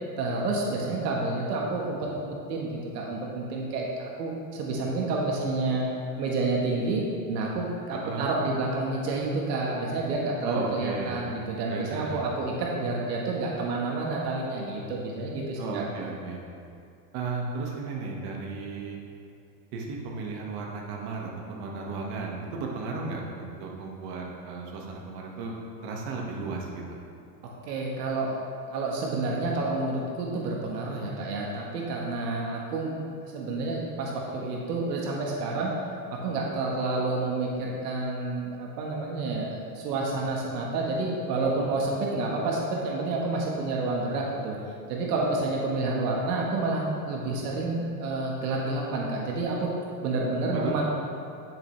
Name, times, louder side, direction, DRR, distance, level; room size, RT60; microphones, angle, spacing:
voice 1, 0.2-5.9 6.2-15.8 27.7-28.4 28.7-32.9 33.2-35.7 36.1-44.5 44.9-49.7 50.0-50.8, right 2 dB, 75° right, -2 dB, 1.5 m, -29 dB
voice 2, 7.9-8.3 10.4-11.2 11.7-12.3 15.6-16.4 17.1-19.0 19.7-25.6 25.8-27.0 50.5-50.8, right 4 dB, 50° right, -1 dB, 1.7 m, -34 dB
9.8 x 7.7 x 3.3 m, 2.5 s
supercardioid pair, 115°, 48 cm